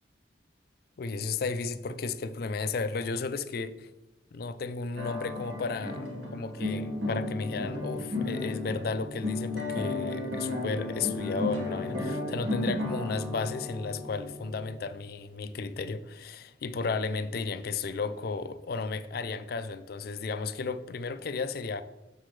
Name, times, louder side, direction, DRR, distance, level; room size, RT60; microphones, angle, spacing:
voice 1, 1.0-3.9 4.3-21.8, left 4 dB, 55° left, 0.4 m, -34 dB
sound 1, 5.0-14.8, left 2 dB, 90° right, 1.6 m, -34 dB
7.2 x 5.9 x 3.2 m
head